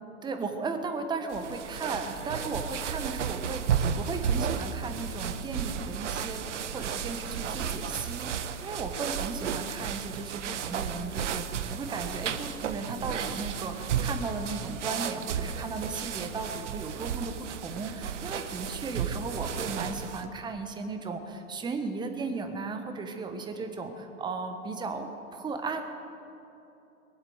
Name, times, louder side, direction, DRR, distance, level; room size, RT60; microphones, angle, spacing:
voice 1, 0.2-25.8, right 4 dB, 10° right, 6 dB, 1.2 m, -36 dB
sound 1, 1.3-20.3, right 7 dB, 60° right, 1.1 m, -33 dB
21.0 x 8.3 x 8.0 m, 2.8 s
figure-of-eight pair, 115°, 42 cm